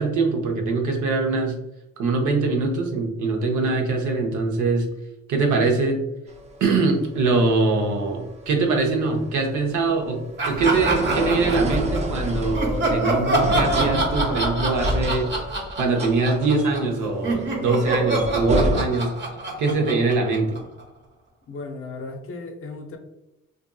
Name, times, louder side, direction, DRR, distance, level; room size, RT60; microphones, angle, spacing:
voice 1, 0.0-1.5 2.0-4.8 5.3-6.0 6.6-15.3 15.8-19.1 19.6-20.6, right 3 dB, 75° right, 2 dB, 0.7 m, -22 dB
sound 1, 6.3-18.8, right 1 dB, 20° right, 0.4 m, -29 dB
Laughter, 10.4-12.1 12.5-16.9 17.2-20.8, right 2 dB, 40° right, 0.8 m, -26 dB
voice 2, 21.5-23.0, left 3 dB, 45° left, 5 dB, 0.5 m, -35 dB
2.6 x 2.5 x 2.2 m, 0.93 s
cardioid pair, 90°, 30 cm